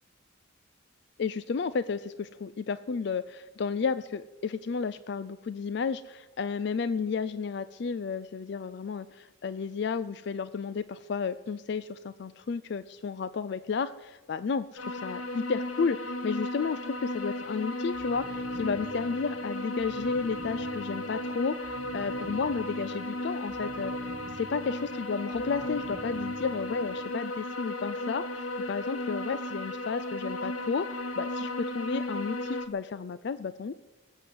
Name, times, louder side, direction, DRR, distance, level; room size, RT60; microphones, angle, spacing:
voice 1, 1.2-33.7, left 5 dB, 55° left, 15 dB, 0.4 m, -32 dB
sound 1, 14.8-32.7, left 1 dB, 85° left, 1.2 m, -35 dB
sound 2, 17.9-27.1, right 2 dB, 60° right, 2.1 m, -47 dB
20.0 x 8.2 x 7.7 m, 1.3 s
head